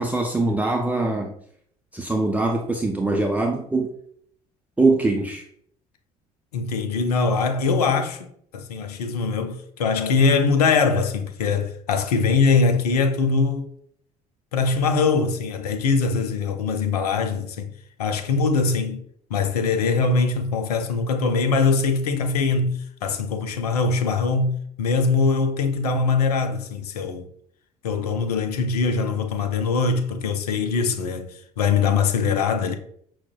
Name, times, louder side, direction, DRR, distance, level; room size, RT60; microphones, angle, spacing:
voice 1, 0.0-1.3 1.9-3.9 4.8-5.4, right 2 dB, 10° right, 0.5 m, -22 dB
voice 2, 6.5-8.3 8.5-13.7 14.5-17.7 18.0-19.0 19.3-27.3 27.8-32.8, left 4 dB, 90° left, 0.4 m, -22 dB
5.7 x 2.0 x 2.2 m
hypercardioid pair, 60°, 19 cm